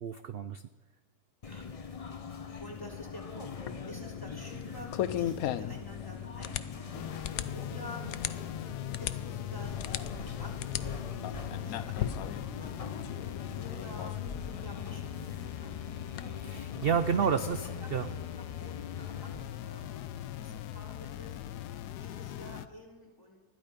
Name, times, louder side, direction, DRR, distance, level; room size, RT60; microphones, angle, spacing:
voice 1, 0.0-0.6 16.4-18.1, right 7 dB, 65° right, 11 dB, 0.5 m, -30 dB
sound 1, 1.4-19.4, left 5 dB, 35° left, 0.6 m, -42 dB
voice 2, 2.6-3.5 3.9-7.1 7.5-8.0 8.4-13.0 13.6-14.2 14.6-16.0 17.2-17.4 17.6-17.9 18.5-21.4 21.9-23.4, left 1 dB, 15° left, -1 dB, 3.0 m, -49 dB
sound 2, 3.5-16.3, left 11 dB, 70° left, 1.1 m, -39 dB
sound 3, 6.9-22.7, left 12 dB, 90° left, 1.2 m, -41 dB
20.5 x 13.0 x 5.2 m, 1.3 s
omnidirectional pair, 1.7 m